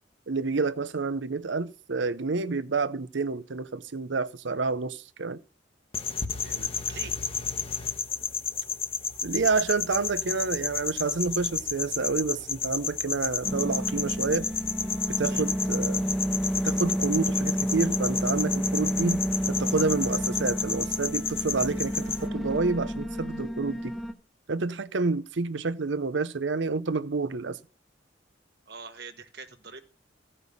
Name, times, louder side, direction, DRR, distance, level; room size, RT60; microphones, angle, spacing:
voice 1, 0.3-5.4 9.2-14.5 15.2-16.1 16.6-24.0 24.5-27.6, right 4 dB, 85° right, 0.7 m, -29 dB
sound 1, 5.9-22.3, left 6 dB, 30° left, 1.0 m, -32 dB
voice 2, 6.3-7.2 15.3-15.5 28.7-29.8, right 4 dB, 60° right, 1.5 m, -44 dB
sound 2, 13.4-24.1, equal, ahead, 0.9 m, -30 dB
15.5 x 5.6 x 8.4 m
head